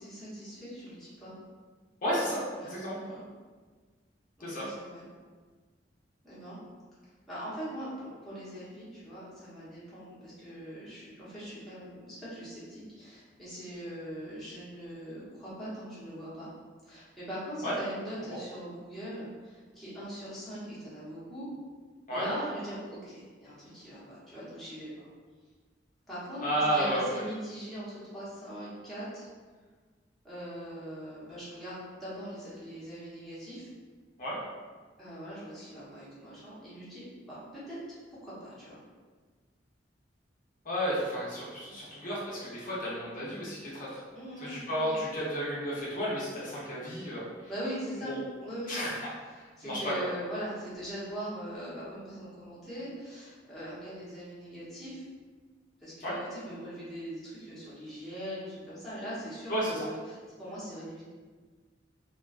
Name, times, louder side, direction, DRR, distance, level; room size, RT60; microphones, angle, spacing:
voice 1, 0.0-1.3 2.6-3.2 4.4-5.0 6.2-6.6 7.3-16.5 16.8-21.5 22.1-25.1 26.1-26.4 26.7-29.3 30.2-33.7 35.0-37.4 37.7-38.0 38.2-38.8 41.6-41.8 44.1-45.0 47.5-48.8 49.6-55.0 55.8-61.0, equal, ahead, -12 dB, 0.8 m, -41 dB
voice 2, 2.0-3.0 4.4-4.7 17.6-17.8 18.3-18.4 22.1-22.3 26.4-27.1 34.2-34.4 40.6-44.0 44.4-47.5 48.0-48.2 48.7-49.1 49.4-50.1 56.0-56.2 59.5-59.8, equal, 45° left, -8 dB, 0.6 m, -32 dB
2.5 x 2.2 x 2.3 m, 1.5 s
head